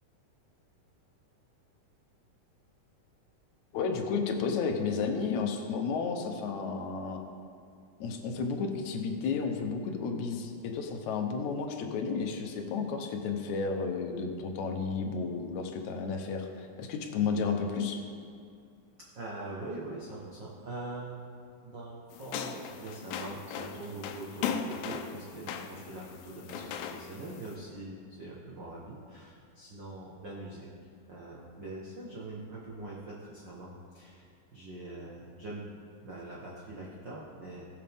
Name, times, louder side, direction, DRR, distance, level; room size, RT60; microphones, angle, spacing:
voice 1, 3.7-7.2 8.0-18.0, left 5 dB, 70° left, 4 dB, 1.9 m, -32 dB
voice 2, 19.0-21.3 21.6-30.7 31.1-35.6 36.0-37.6, right 2 dB, 65° right, -5 dB, 1.1 m, -43 dB
sound 1, 22.1-27.6, left 7 dB, 85° left, 2.5 m, -38 dB
19.5 x 6.8 x 3.6 m, 2.3 s
omnidirectional pair, 4.1 m